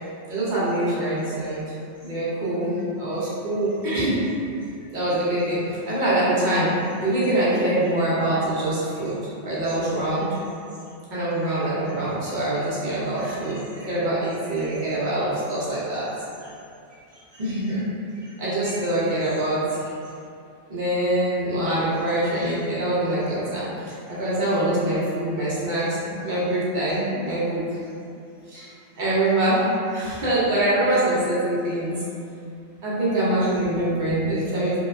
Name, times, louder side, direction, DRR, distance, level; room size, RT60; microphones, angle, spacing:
voice 1, 0.3-1.6 2.0-4.2 4.9-9.2 9.4-10.3 11.1-16.1 17.3-17.8 18.4-19.6 20.7-23.7 24.1-27.6 28.5-28.7 29.0-31.9 32.8-34.8, right 1 dB, 60° right, -9 dB, 0.5 m, -24 dB
2.8 x 2.1 x 2.3 m, 2.5 s
omnidirectional pair, 1.4 m